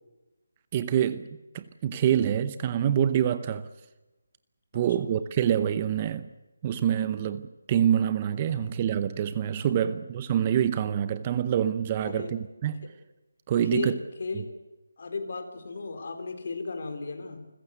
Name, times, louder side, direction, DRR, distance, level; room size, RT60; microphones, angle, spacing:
voice 1, 0.7-1.3 1.5-3.7 4.7-6.3 6.6-12.9 13.5-14.0, right 9 dB, 25° right, 0.8 m, -26 dB
voice 2, 4.7-5.2 8.5-8.7 9.8-9.9 12.0-12.3 12.8-12.9 13.6-14.6 15.0-17.5, left 3 dB, 50° left, 4.0 m, -35 dB
29.0 x 15.0 x 8.2 m
figure-of-eight pair, 170°, 0 cm